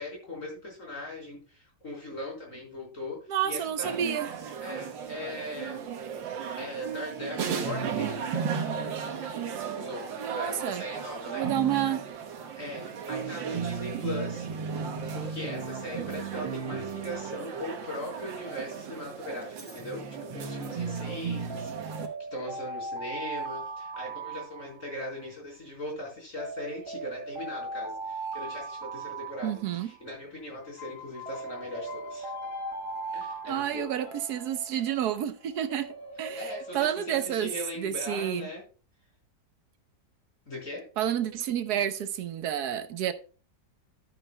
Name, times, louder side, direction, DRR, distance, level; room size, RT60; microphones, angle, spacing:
voice 1, 0.0-3.2 3.4-3.9 4.6-5.9 6.6-8.3 9.7-11.4 12.5-14.5 15.1-22.0 22.3-32.3 33.1-33.9 36.4-38.6 40.5-40.9, left 1 dB, 40° left, 4.7 m, -39 dB
voice 2, 3.3-4.3 10.2-10.8 11.2-12.1 29.4-29.9 33.4-35.9 36.2-38.5 41.0-43.1, right 10 dB, 65° right, 1.3 m, -30 dB
sound 1, 3.8-22.1, right 6 dB, 85° right, 1.8 m, -35 dB
Alarm, 19.4-19.8 21.5-25.3 26.4-30.1 31.2-34.5, right 3 dB, 15° right, 1.4 m, -38 dB
sound 2, 30.6-36.8, left 3 dB, 90° left, 2.1 m, -45 dB
12.0 x 9.3 x 2.2 m
omnidirectional pair, 2.0 m